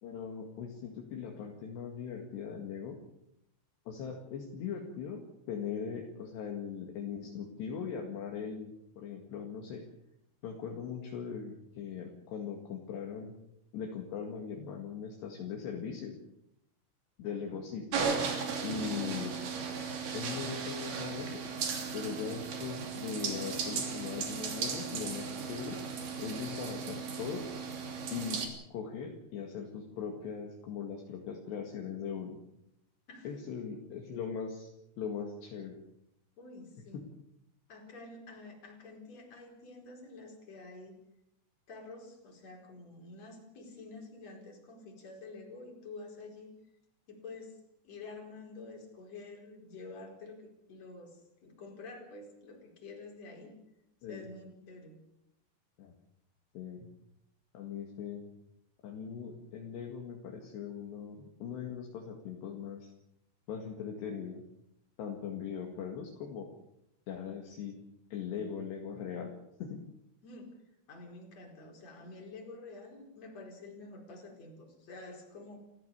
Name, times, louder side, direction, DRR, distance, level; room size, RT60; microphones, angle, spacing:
voice 1, 0.0-3.0 3.9-5.2 5.5-9.8 10.4-13.3 13.7-16.2 17.2-17.9 18.6-19.3 20.1-21.4 21.9-25.8 26.2-27.5 28.1-28.4 28.7-32.4 33.2-34.7 35.0-35.8 36.9-37.1 54.0-54.3 55.8-55.9 56.5-56.9 57.5-58.3 58.8-62.9 63.5-64.4 65.0-66.5 67.1-67.8 68.1-69.3 69.6-69.8, left 7 dB, 60° left, 2 dB, 3.8 m, -40 dB
voice 2, 17.2-17.7 19.1-19.2 33.1-33.3 36.4-37.0 37.7-41.0 41.7-46.5 47.1-47.5 47.8-53.5 54.1-55.0 70.2-70.5 70.9-75.6, left 3 dB, 35° left, 2 dB, 5.3 m, -49 dB
sound 1, 17.9-28.5, right 5 dB, 55° right, 4.6 m, -36 dB
29.0 x 15.0 x 7.1 m, 0.82 s
omnidirectional pair, 6.0 m